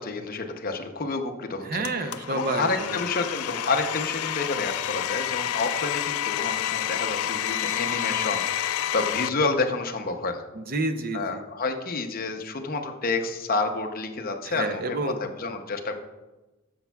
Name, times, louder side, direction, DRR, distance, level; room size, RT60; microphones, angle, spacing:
voice 1, 0.0-1.7 2.0-10.5 11.1-15.9, left 3 dB, 45° left, 5 dB, 0.7 m, -29 dB
voice 2, 1.6-3.1 10.5-11.4 14.4-15.2, right 2 dB, 45° right, 8 dB, 0.6 m, -30 dB
Domestic sounds home sounds, 1.8-9.3, left 11 dB, 90° left, 0.3 m, -29 dB
10.0 x 7.1 x 2.3 m, 1.1 s
head